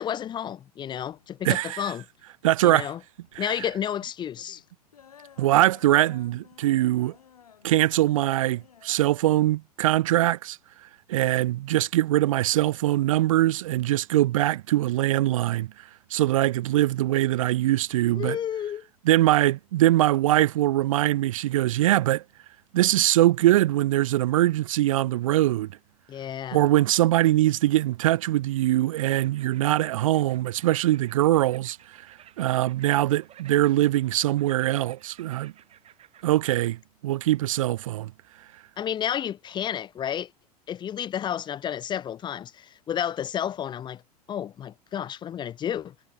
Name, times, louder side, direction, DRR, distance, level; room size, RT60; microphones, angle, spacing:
voice 1, 0.0-2.0 2.6-3.0 3.4-4.6 18.1-18.9 26.1-26.6 38.8-40.3 40.7-44.0 44.3-45.9, left 9 dB, 25° left, 0.7 m, -31 dB
sound 1, 1.1-11.1, left 8 dB, 70° left, 5.9 m, -55 dB
voice 2, 1.4-1.9 2.4-2.9 3.4-3.5 5.4-7.1 7.6-10.6 11.1-15.7 16.1-18.4 19.1-22.2 22.7-25.7 26.5-35.5 36.2-36.8 37.0-38.1, right 15 dB, 55° right, 0.6 m, -22 dB
sound 2, 29.1-36.3, right 11 dB, 30° right, 7.9 m, -54 dB
figure-of-eight pair, 85°, 20 cm